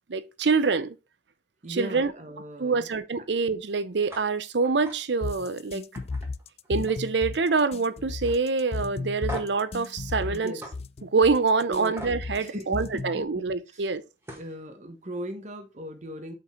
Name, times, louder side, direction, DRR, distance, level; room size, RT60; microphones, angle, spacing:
voice 1, 0.1-1.0 1.7-2.1 2.6-5.8 6.7-10.5 11.0-14.0, right 4 dB, 75° right, 0.7 m, -25 dB
voice 2, 1.6-2.9 10.3-10.7 11.7-12.0 12.4-13.2 13.7-13.8 14.4-16.3, equal, 40° right, 1.2 m, -37 dB
sound 1, 4.1-4.3 4.6-5.0 5.4-5.5 5.9-7.1 7.4-7.8 8.2-8.4 9.3-9.6 10.6-10.7 12.0-12.2 13.8-13.9 14.2-14.5, equal, 15° right, 1.9 m, -40 dB
sound 2, 5.2-13.2, left 3 dB, 35° left, 0.3 m, -34 dB
5.9 x 5.4 x 4.4 m
head